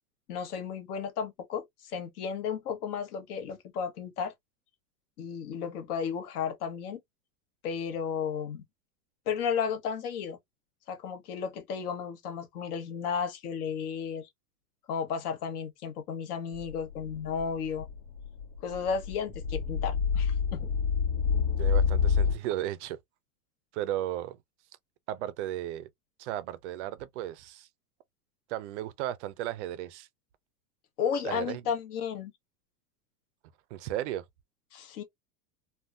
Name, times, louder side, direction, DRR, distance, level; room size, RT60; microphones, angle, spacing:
voice 1, 0.3-4.3 5.2-7.0 7.6-8.6 9.3-10.4 10.9-14.3 14.9-17.9 18.6-20.7 31.0-32.3 34.7-35.0, left 7 dB, 65° left, 1.3 m, -33 dB
sound 1, 16.6-22.4, left 6 dB, 80° left, 1.6 m, -27 dB
voice 2, 21.6-23.0 23.7-24.4 25.1-25.9 26.2-27.7 28.5-30.1 31.2-31.6 33.7-34.2, right 13 dB, 50° right, 0.5 m, -35 dB
3.5 x 2.3 x 2.5 m
supercardioid pair, 160°, 49 cm